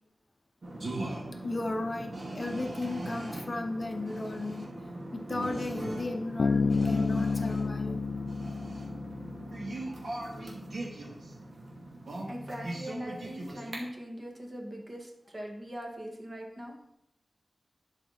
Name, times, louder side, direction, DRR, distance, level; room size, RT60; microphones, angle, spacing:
sound 1, 0.6-13.7, right 1 dB, 65° right, 2.2 m, -40 dB
voice 1, 1.4-4.7 5.1-8.0, left 2 dB, 40° left, 5 dB, 0.7 m, -35 dB
Bass guitar, 6.4-9.9, left 4 dB, 75° left, 0.4 m, -30 dB
voice 2, 12.3-16.8, equal, 30° right, 1 dB, 1.9 m, -41 dB
11.5 x 4.9 x 4.3 m, 0.82 s
wide cardioid pair, 100°, 0 cm